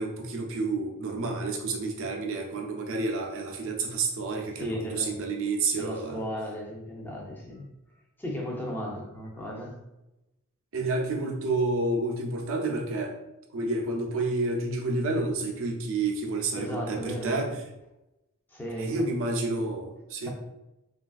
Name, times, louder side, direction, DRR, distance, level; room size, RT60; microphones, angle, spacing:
voice 1, 0.0-6.2 10.7-13.2 13.5-17.5 18.8-20.3, right 3 dB, 60° right, 1 dB, 0.5 m, -29 dB
voice 2, 4.6-5.2 5.7-7.7 8.2-9.8 16.6-17.5 18.5-19.0 20.2-20.3, equal, 10° left, -2 dB, 0.5 m, -35 dB
3.2 x 2.3 x 2.4 m, 0.94 s
head